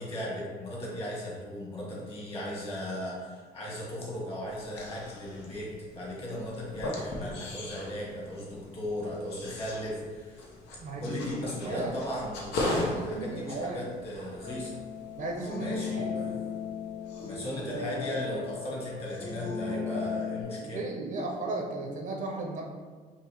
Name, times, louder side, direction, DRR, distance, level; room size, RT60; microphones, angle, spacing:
voice 1, 0.0-10.5 11.0-14.8 15.6-16.4 17.2-20.8, left 1 dB, 35° left, -4 dB, 1.4 m, -37 dB
sound 1, 4.5-18.8 19.0-19.7, left 1 dB, 80° left, 0.8 m, -40 dB
voice 2, 10.8-11.9 12.7-13.8 15.2-16.1 20.6-22.6, right 2 dB, 50° right, 0 dB, 0.6 m, -35 dB
sound 2, 14.4-20.4, left 5 dB, 50° left, 1.0 m, -36 dB
5.3 x 2.0 x 3.3 m, 1.5 s
cardioid pair, 110°, 17 cm